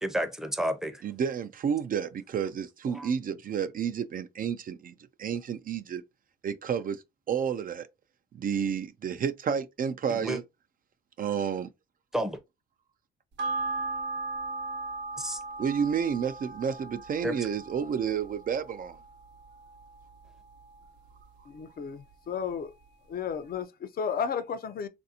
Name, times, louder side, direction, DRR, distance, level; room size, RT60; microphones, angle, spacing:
voice 1, 0.0-1.0 2.9-3.1 10.1-10.4 12.1-12.4 15.2-15.4 17.2-17.4, equal, ahead, 0.6 m, -31 dB
voice 2, 1.0-4.9 5.2-6.0 6.4-7.0 7.3-7.9 8.3-10.4 11.2-11.7 15.6-19.0, right 7 dB, 45° right, 0.4 m, -30 dB
sound 1, 13.4-22.1 22.5-22.6, right 3 dB, 65° right, 0.8 m, -38 dB
voice 3, 21.5-22.7 23.1-24.9, left 7 dB, 50° left, 0.5 m, -33 dB
3.2 x 2.6 x 2.7 m
cardioid pair, 90°, 20 cm